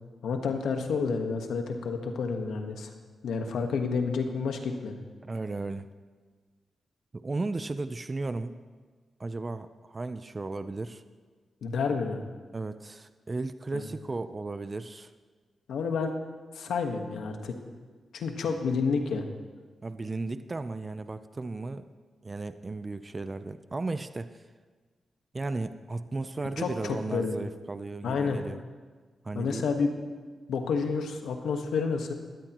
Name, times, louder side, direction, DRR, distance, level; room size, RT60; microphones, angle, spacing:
voice 1, 0.2-2.9 3.2-5.0 11.6-12.2 13.7-13.9 15.7-16.1 16.5-17.6 18.1-19.3 26.6-27.3 28.0-28.4 29.3-29.9 30.5-32.1, left 5 dB, 85° left, 5 dB, 1.4 m, -29 dB
voice 2, 5.2-5.9 7.1-8.6 9.2-11.0 12.5-15.1 19.8-21.8 22.2-24.4 25.3-28.6 29.2-29.6, right 3 dB, 35° right, 11 dB, 0.6 m, -35 dB
18.5 x 13.0 x 3.0 m, 1.4 s
cardioid pair, 55°, 0 cm